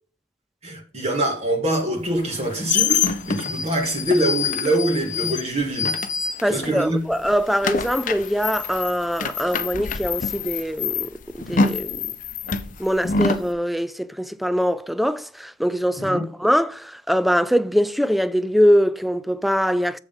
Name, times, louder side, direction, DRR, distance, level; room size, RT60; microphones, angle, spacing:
voice 1, 0.6-5.9 6.5-7.0 16.0-16.2, right 1 dB, 40° right, 2.1 m, -24 dB
sound 1, 2.2-6.8 7.1-13.5, left 5 dB, 50° left, 0.7 m, -26 dB
voice 2, 6.4-12.1 12.8-20.0, equal, ahead, 0.4 m, -22 dB
7.5 x 6.7 x 5.5 m
head